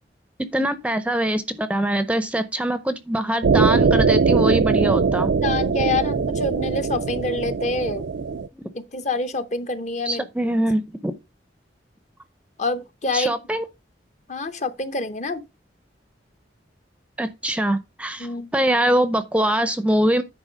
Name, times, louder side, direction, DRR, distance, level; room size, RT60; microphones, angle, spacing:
voice 1, 0.5-5.3 8.6-8.7 10.0-11.1 13.1-13.6 17.2-20.2, right 1 dB, 5° right, 0.6 m, -23 dB
sound 1, 3.4-8.5, right 5 dB, 70° right, 0.4 m, -21 dB
voice 2, 5.4-8.0 8.7-10.3 12.6-13.4 14.3-15.4 18.2-18.5, left 3 dB, 40° left, 0.8 m, -26 dB
10.0 x 3.9 x 5.1 m
head